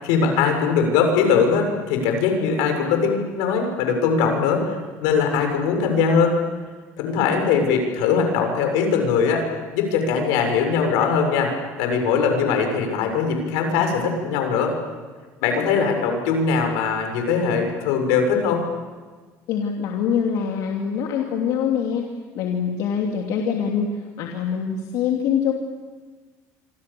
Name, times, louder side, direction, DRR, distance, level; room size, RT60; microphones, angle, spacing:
voice 1, 0.0-6.4 7.0-9.4 9.7-11.5 11.8-14.7 15.4-18.6, left 5 dB, 90° left, 4 dB, 6.5 m, -21 dB
voice 2, 19.5-22.1 22.3-25.5, left 7 dB, 70° left, 1 dB, 3.0 m, -24 dB
27.0 x 26.0 x 7.1 m, 1.4 s
cardioid pair, 125°, 7 cm